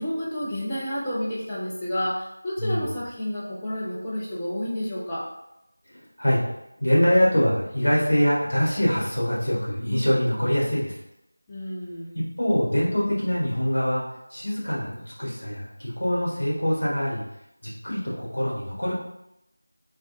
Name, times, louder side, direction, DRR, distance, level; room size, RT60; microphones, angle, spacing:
voice 1, 0.0-5.2 11.5-12.1, equal, 10° left, -10 dB, 0.6 m, -30 dB
voice 2, 5.9-6.4 6.8-10.9 12.4-14.0 14.3-17.2 17.6-18.9, equal, 65° left, -6 dB, 1.5 m, -24 dB
3.3 x 2.4 x 2.7 m, 0.85 s
figure-of-eight pair, 170°, 0 cm